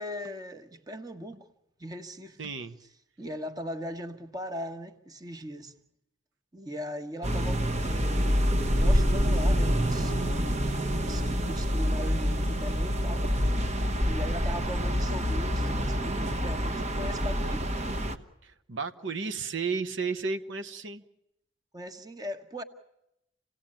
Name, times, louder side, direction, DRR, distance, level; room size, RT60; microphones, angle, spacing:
voice 1, 0.0-1.5 1.8-2.4 3.2-5.7 6.5-10.1 11.0-13.3 14.0-17.7 21.7-22.6, equal, 20° right, 1.4 m, -39 dB
voice 2, 2.4-2.8 18.4-21.0, right 4 dB, 90° right, 1.1 m, -33 dB
sound 1, 7.2-18.2, equal, 35° right, 1.2 m, -27 dB
27.5 x 17.5 x 8.8 m
head